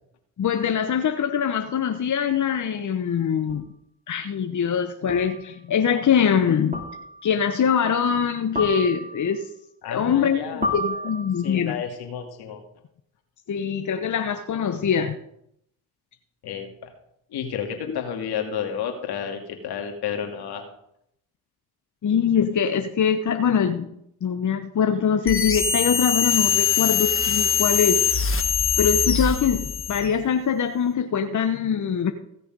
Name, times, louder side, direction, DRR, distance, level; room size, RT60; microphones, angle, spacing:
voice 1, 0.4-3.6 4.1-6.8 7.2-9.5 9.9-11.8 13.5-15.1 17.9-18.0 22.0-23.9 24.2-28.1 28.8-32.1, left 7 dB, 50° left, 7 dB, 1.1 m, -23 dB
sound 1, 3.5-3.6 5.1-5.5 6.7-7.3 8.6-9.3 10.6-11.6, left 1 dB, 20° right, 4.8 m, -31 dB
voice 2, 9.8-11.1 11.4-12.6 16.4-16.9 17.3-20.7, left 8 dB, 75° left, 3 dB, 2.3 m, -31 dB
sound 2, 25.3-30.1, left 6 dB, 30° left, 1.5 m, -22 dB
16.0 x 6.8 x 5.4 m, 0.76 s
supercardioid pair, 55°, 39 cm